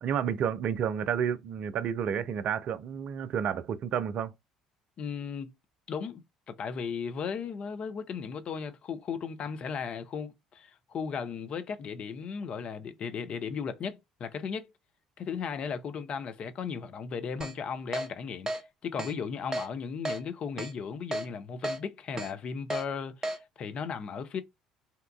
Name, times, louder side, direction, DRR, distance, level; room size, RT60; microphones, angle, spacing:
voice 1, 0.0-4.3, right 8 dB, 50° right, 0.4 m, -30 dB
voice 2, 5.0-5.5 5.9-14.7 15.2-18.5 18.8-24.4, left 6 dB, 45° left, 0.4 m, -36 dB
Keyboard (musical), 17.4-17.5 17.9-18.1 18.5-18.6 19.0-19.1 19.5-19.7 20.1-20.2 20.6-20.7 21.1-21.3 21.6-21.8 22.2-22.3 22.7-22.8 23.2-23.4, right 1 dB, 25° right, 0.7 m, -32 dB
2.8 x 2.2 x 2.3 m
figure-of-eight pair, 55°, 3 cm